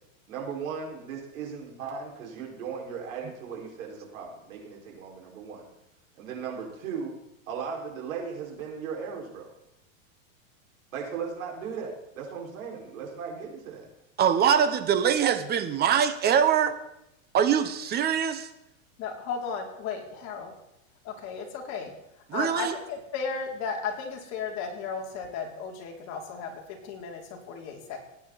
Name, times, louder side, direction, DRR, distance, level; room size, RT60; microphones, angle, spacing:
voice 1, 0.3-5.7 6.2-7.1 7.5-9.5 10.9-13.9, right 6 dB, 75° right, -1 dB, 5.4 m, -37 dB
voice 2, 14.2-16.8 17.3-18.5 22.3-22.8, right 8 dB, 25° right, 10 dB, 1.0 m, -23 dB
voice 3, 19.0-20.5 21.0-21.9 22.3-28.0, left 5 dB, 40° left, 0 dB, 3.2 m, -35 dB
18.5 x 9.6 x 4.2 m, 0.84 s
supercardioid pair, 140°, 41 cm